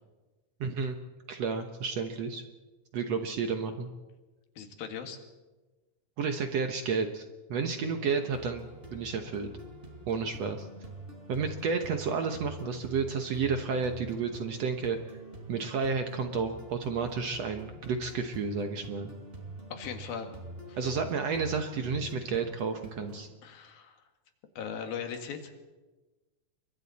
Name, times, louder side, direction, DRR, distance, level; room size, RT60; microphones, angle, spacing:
voice 1, 0.6-1.0 1.3-2.4 2.9-3.9 6.2-8.6 8.9-9.5 10.1-10.7 11.3-15.0 15.5-19.1 20.8-23.3, right 5 dB, 65° right, 6 dB, 1.7 m, -31 dB
voice 2, 4.6-5.2 19.7-20.3 20.7-20.8 23.4-24.0 24.6-25.5, left 7 dB, 85° left, 5 dB, 3.6 m, -38 dB
sound 1, 7.6-23.2, right 2 dB, 15° right, 4.6 m, -45 dB
29.0 x 23.5 x 4.2 m, 1.2 s
omnidirectional pair, 4.1 m